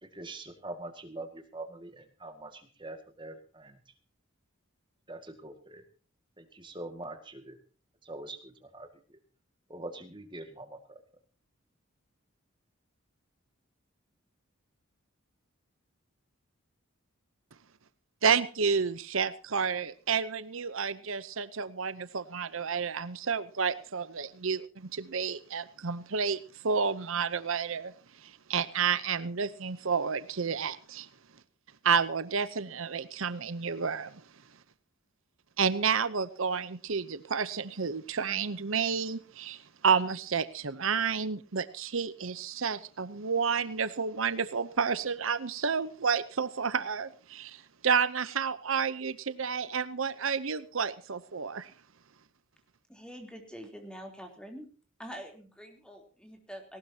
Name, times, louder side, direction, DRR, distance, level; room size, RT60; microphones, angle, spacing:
voice 1, 0.0-3.8 5.1-5.8 6.4-7.6 8.0-9.2 9.7-11.0, right 2 dB, 20° right, 6 dB, 2.0 m, -44 dB
voice 2, 18.2-31.1 31.8-34.2 35.6-51.7, right 6 dB, 75° right, 14 dB, 0.8 m, -30 dB
voice 3, 52.9-54.6 55.0-56.8, equal, 5° left, 4 dB, 3.5 m, -45 dB
19.0 x 18.5 x 2.9 m, 0.38 s
head